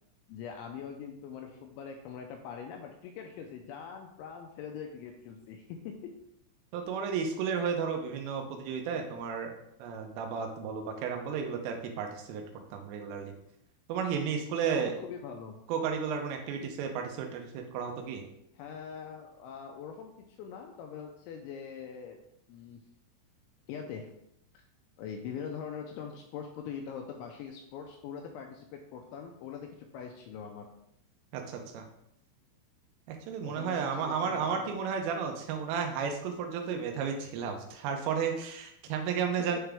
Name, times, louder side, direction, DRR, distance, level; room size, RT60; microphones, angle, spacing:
voice 1, 0.3-6.1 14.7-15.6 18.6-22.2 22.5-22.8 23.7-24.1 25.0-29.7 29.9-30.7 33.4-34.8, left 7 dB, 85° left, 3 dB, 2.7 m, -42 dB
voice 2, 6.7-9.5 9.8-12.4 12.7-13.3 13.9-14.9 15.7-18.2 31.3-31.8 33.1-39.6, right 6 dB, 80° right, 3 dB, 3.3 m, -33 dB
9.9 x 3.6 x 3.4 m, 0.78 s
omnidirectional pair, 5.9 m